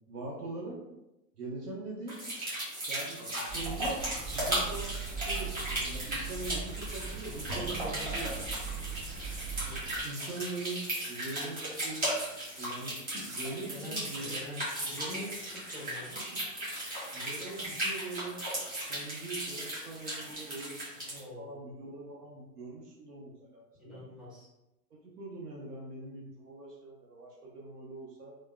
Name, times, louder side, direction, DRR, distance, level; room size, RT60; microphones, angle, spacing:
voice 1, 0.1-0.8 1.4-2.2 2.9-4.0 4.3-8.5 9.7-10.8 11.1-12.1 12.6-14.4 14.8-15.3 17.1-18.4 18.8-24.0 24.9-28.4, right 2 dB, 90° right, -3 dB, 0.7 m, -42 dB
sound 1, 2.1-21.2, right 1 dB, 20° right, 1.3 m, -36 dB
sound 2, 3.5-10.0, right 6 dB, 45° right, 1.2 m, -40 dB
sound 3, 7.5-9.3, right 2 dB, 60° right, 1.4 m, -45 dB
voice 2, 13.7-15.3 15.5-16.2 21.2-21.7 23.8-24.5, left 2 dB, 5° right, -8 dB, 0.4 m, -45 dB
3.1 x 2.0 x 2.2 m, 0.93 s
hypercardioid pair, 110°, 46 cm